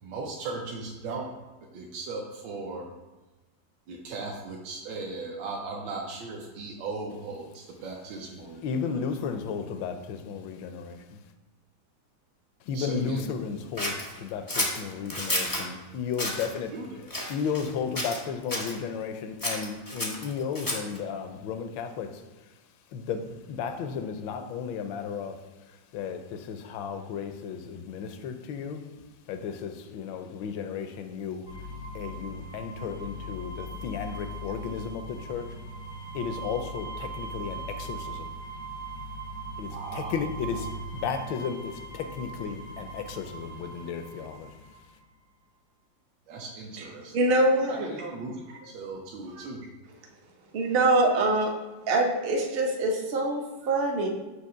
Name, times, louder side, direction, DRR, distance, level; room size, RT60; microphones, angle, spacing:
voice 1, 0.0-1.3 1.7-2.9 3.9-9.1 12.7-13.2 16.7-17.0 39.7-40.2 46.3-47.1 47.7-49.7, right 3 dB, 70° right, -2 dB, 1.4 m, -37 dB
voice 2, 8.6-11.2 12.7-16.7 17.3-22.2 22.9-25.4 25.9-28.8 29.3-31.4 31.9-35.6 36.1-38.4 39.6-44.5, left 6 dB, 80° left, 8 dB, 1.3 m, -34 dB
Scissors, 13.8-15.7 16.1-16.5 17.1-17.7 17.9-18.7 19.4-21.0, left 1 dB, 30° left, 0.3 m, -31 dB
sound 1, 31.5-44.9, right 1 dB, 60° left, 0.8 m, -39 dB
voice 3, 47.1-47.7 49.4-49.5 50.5-51.5 51.9-54.1, right 2 dB, 55° right, 0 dB, 0.6 m, -24 dB
6.4 x 2.9 x 5.5 m, 1.2 s
omnidirectional pair, 2.2 m